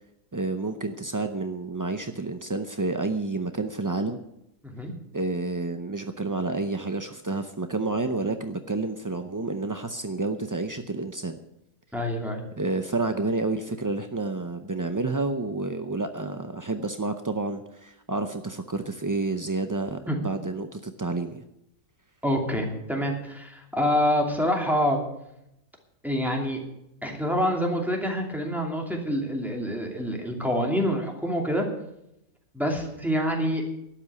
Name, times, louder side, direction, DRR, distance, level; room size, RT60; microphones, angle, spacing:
voice 1, 0.3-4.2 5.1-11.4 12.6-21.4, right 3 dB, 30° right, 8 dB, 0.3 m, -29 dB
voice 2, 11.9-12.4 20.1-20.2 22.2-25.0 26.0-26.6 27.0-31.7 32.5-33.6, equal, ahead, 1 dB, 2.6 m, -26 dB
12.0 x 8.7 x 8.3 m, 0.82 s
omnidirectional pair, 1.4 m